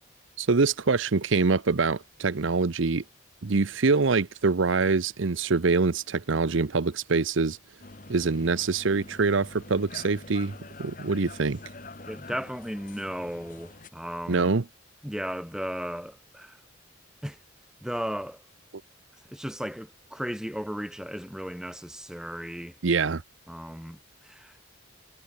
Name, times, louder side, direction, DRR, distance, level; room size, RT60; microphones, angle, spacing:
voice 1, 0.4-3.0 3.4-7.6 8.1-11.6 14.3-14.6 22.8-23.2, right 4 dB, 75° right, 0.7 m, -24 dB
sound 1, 7.8-13.9, left 2 dB, 40° left, 1.7 m, -45 dB
voice 2, 12.1-14.5 15.0-16.6 17.2-17.4 17.8-18.4 19.3-22.7 23.5-24.6, equal, 5° right, 3.3 m, -35 dB
head